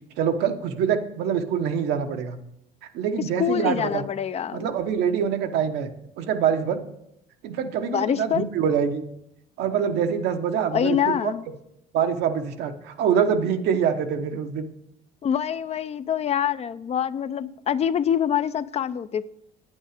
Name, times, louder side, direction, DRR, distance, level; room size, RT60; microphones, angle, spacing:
voice 1, 0.2-2.4 2.8-4.0 4.5-5.9 6.2-6.8 7.4-9.0 9.6-11.3 11.9-14.7, right 7 dB, 80° right, 1.0 m, -25 dB
voice 2, 3.4-4.7 7.9-8.5 10.7-11.4 15.2-19.2, left 9 dB, 40° left, 0.4 m, -25 dB
9.1 x 8.7 x 5.0 m
cardioid pair, 110°, 17 cm